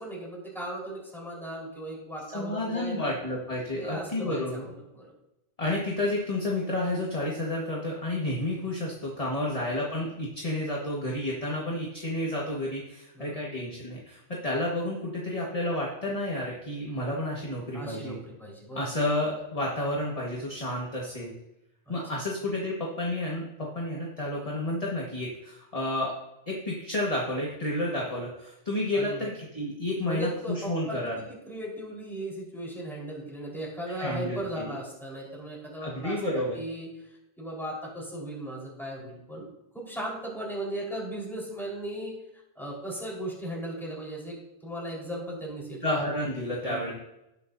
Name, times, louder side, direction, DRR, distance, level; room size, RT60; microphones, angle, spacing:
voice 1, 0.0-3.1 3.8-5.0 9.4-9.6 13.1-13.4 17.7-18.9 21.9-22.0 28.9-29.2 30.1-36.9 37.4-39.5 39.7-42.1 42.6-44.3 44.6-45.8 46.6-46.9, right 1 dB, ahead, -5 dB, 4.3 m, -37 dB
voice 2, 2.3-4.7 5.6-18.2 18.7-21.3 21.9-26.1 26.5-31.2 33.9-34.7 35.8-36.6 45.8-46.9, left 1 dB, 30° left, -4 dB, 1.6 m, -31 dB
19.0 x 6.8 x 2.7 m, 0.90 s
omnidirectional pair, 1.2 m